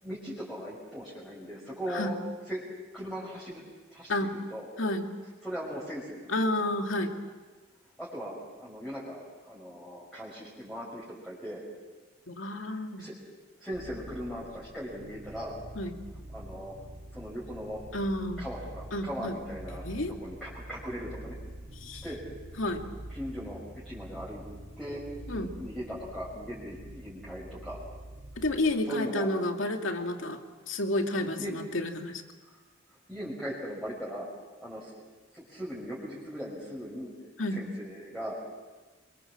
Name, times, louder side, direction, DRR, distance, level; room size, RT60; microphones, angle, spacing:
voice 1, 0.0-2.1 2.5-2.6 2.9-3.6 3.9-4.7 5.4-6.4 8.0-11.6 12.7-13.1 13.6-15.5 16.3-16.7 17.1-17.8 18.4-19.8 20.2-21.4 22.0-22.2 22.5-22.6 23.1-23.6 23.8-24.4 24.8-25.0 25.3-27.8 28.9-29.3 31.4-31.6 32.4-32.6 33.1-34.3 34.6-34.9 35.3-37.1 37.5-38.3, equal, ahead, -8 dB, 5.6 m, -39 dB
voice 2, 4.8-5.1 6.3-7.2 12.3-13.1 15.8-15.9 17.9-18.4 18.9-19.4 19.8-20.1 21.8-22.0 22.6-22.8 25.3-25.5 28.4-30.4 30.7-32.2 37.4-37.6, left 1 dB, 70° left, 4 dB, 2.5 m, -30 dB
sound 1, 13.7-28.7, right 1 dB, 65° right, 3.1 m, -46 dB
28.0 x 23.5 x 7.5 m, 1.3 s
head